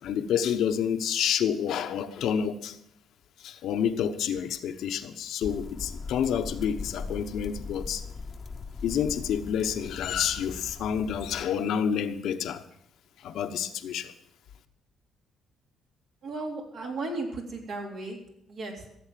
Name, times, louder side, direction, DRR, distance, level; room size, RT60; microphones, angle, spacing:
voice 1, 0.0-2.8 3.4-8.0 8.8-12.6 13.2-14.1, left 8 dB, 80° left, 1.0 m, -29 dB
sound 1, 5.4-11.4, left 4 dB, 40° left, 0.9 m, -40 dB
voice 2, 16.2-18.2 18.5-18.9, right 2 dB, 70° right, 3.7 m, -35 dB
15.0 x 7.8 x 7.6 m
cardioid pair, 90°, 0 cm